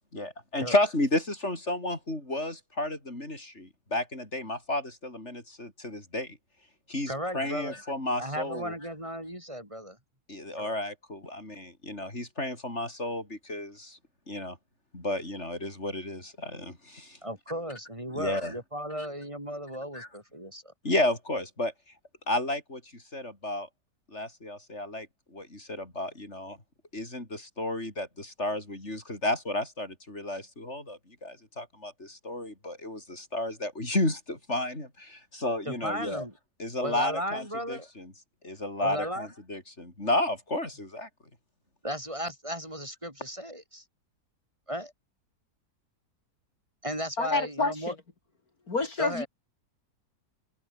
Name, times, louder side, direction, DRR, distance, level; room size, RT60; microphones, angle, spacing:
voice 1, 0.1-6.4 6.9-8.7 10.3-14.0 14.3-14.6 14.9-17.2 18.2-18.5 19.9-20.1 20.8-21.7 22.3-23.7 24.1-26.6 26.9-36.2 36.6-38.1 38.4-41.1, left 1 dB, 45° left, 6.3 m, -32 dB
voice 2, 7.1-7.8 8.2-10.0 10.6-10.8 17.2-20.7 35.7-36.3 36.8-37.9 38.8-39.3 41.8-43.8 44.7-44.9 46.8-47.9 49.0-49.3, equal, 20° right, 5.8 m, -35 dB
voice 3, 47.2-47.9 48.7-49.3, left 3 dB, 65° left, 3.6 m, -28 dB
omnidirectional pair, 1.7 m